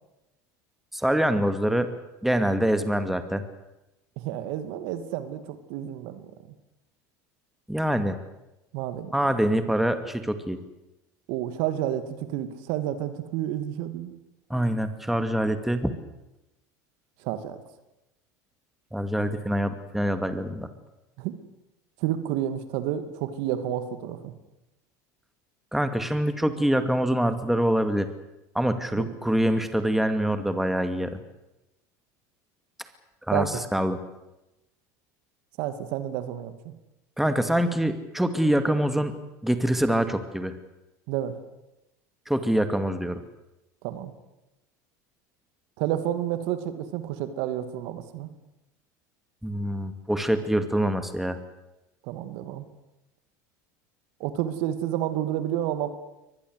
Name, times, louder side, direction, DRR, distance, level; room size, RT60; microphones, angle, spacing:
voice 1, 0.9-1.9 2.2-3.4 7.7-8.2 9.1-10.6 14.5-15.9 18.9-20.7 25.7-28.1 28.5-31.2 33.3-34.0 37.2-39.1 39.4-40.5 42.3-43.2 49.4-51.4, right 1 dB, 5° right, 9 dB, 2.4 m, -25 dB
voice 2, 4.2-6.3 8.7-9.1 11.3-14.1 17.2-17.6 21.2-21.3 22.0-24.3 28.9-29.1 33.3-33.6 35.6-36.7 41.1-41.4 43.8-44.1 45.8-48.3 52.0-52.7 54.2-55.9, right 11 dB, 65° right, 10 dB, 2.4 m, -30 dB
23.5 x 20.0 x 8.2 m, 0.95 s
supercardioid pair, 95°, 9 cm